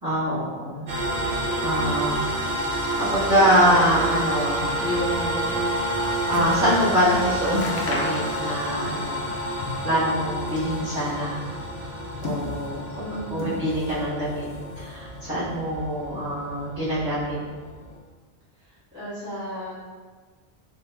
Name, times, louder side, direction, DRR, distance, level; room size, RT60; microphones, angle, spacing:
voice 1, 0.0-0.9 1.3-2.3 2.6-9.3 9.8-11.4 11.9-12.0 12.2-14.5 14.7-17.4, equal, 35° right, -14 dB, 1.3 m, -25 dB
sound 1, 0.9-18.0, right 1 dB, 75° right, 1.1 m, -29 dB
sound 2, 6.0-6.7 7.1-7.2 7.5-8.8 9.1-10.0 10.4-11.2 11.9-12.9 13.3-14.1 14.3-15.1 15.8-15.9, left 3 dB, 60° left, 0.7 m, -34 dB
voice 2, 12.9-13.5 18.6-19.8, equal, 10° right, -12 dB, 1.2 m, -36 dB
2.8 x 2.7 x 3.3 m, 1.5 s
omnidirectional pair, 1.2 m